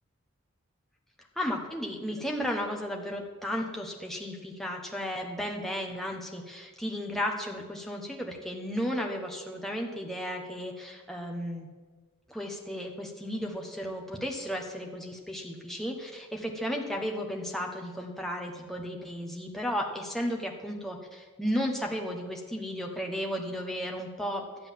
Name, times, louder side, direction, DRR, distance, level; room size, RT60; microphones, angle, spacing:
voice 1, 1.4-11.7 12.3-24.7, equal, ahead, 1 dB, 1.3 m, -34 dB
12.5 x 8.1 x 7.4 m, 1.4 s
head